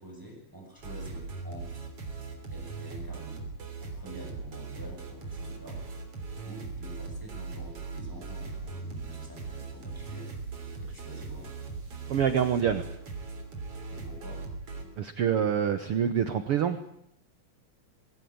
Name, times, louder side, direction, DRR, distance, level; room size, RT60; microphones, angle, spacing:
voice 1, 0.0-1.9 2.5-3.5 3.8-5.8 6.4-10.3 10.8-11.5 13.9-14.5, right 1 dB, 5° right, 0 dB, 7.1 m, -47 dB
sound 1, 0.8-14.8, right 4 dB, 40° right, 4.1 m, -39 dB
voice 2, 12.1-12.8 15.0-16.8, right 8 dB, 90° right, 10 dB, 1.2 m, -26 dB
21.0 x 17.5 x 8.7 m, 0.75 s
omnidirectional pair, 4.1 m